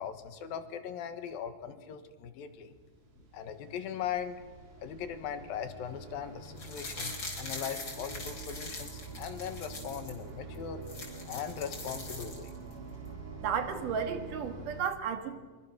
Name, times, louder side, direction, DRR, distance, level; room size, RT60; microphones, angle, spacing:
voice 1, 0.0-2.8 3.3-4.4 4.8-10.8 11.3-12.5, left 8 dB, 80° left, 9 dB, 3.2 m, -39 dB
sound 1, 2.7-14.8, right 4 dB, 90° right, 5.4 m, -46 dB
sound 2, 6.4-10.1 10.5-10.6 10.8-12.7 13.1-13.2, left 2 dB, 30° left, 5.0 m, -42 dB
voice 2, 13.4-15.4, right 7 dB, 65° right, 7 dB, 3.0 m, -33 dB
25.5 x 23.5 x 6.1 m, 1.4 s
omnidirectional pair, 4.2 m